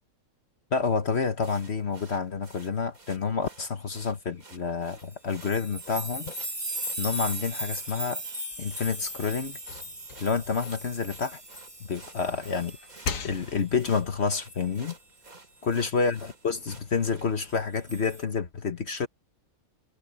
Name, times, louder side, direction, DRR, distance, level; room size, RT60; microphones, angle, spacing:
voice 1, 0.7-6.3 7.0-8.2 8.6-9.6 10.2-11.4 11.8-12.8 13.2-15.0 15.6-19.1, left 5 dB, 50° left, 1.4 m, -29 dB
sound 1, 1.4-17.7, right 3 dB, 85° right, 4.5 m, -53 dB
sound 2, 5.0-13.3 13.7-14.8 16.0-16.1 17.5-18.2, right 1 dB, 20° right, 1.8 m, -38 dB
sound 3, 8.5-11.7 12.1-13.9, left 5 dB, 70° left, 1.8 m, -40 dB
omnidirectional pair, 1.5 m